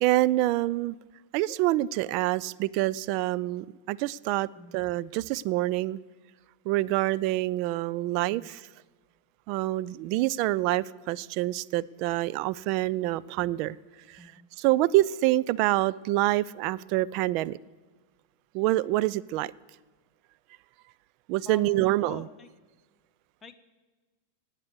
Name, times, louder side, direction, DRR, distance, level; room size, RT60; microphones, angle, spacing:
voice 1, 0.0-1.0 1.3-4.5 4.7-6.0 6.7-8.6 9.5-13.8 14.6-17.6 18.5-19.5 21.3-22.2, right 16 dB, 45° right, 0.3 m, -26 dB
voice 2, 21.4-22.5 23.4-23.5, left 6 dB, 15° left, 1.0 m, -45 dB
18.0 x 8.2 x 7.9 m
figure-of-eight pair, 90°, 0 cm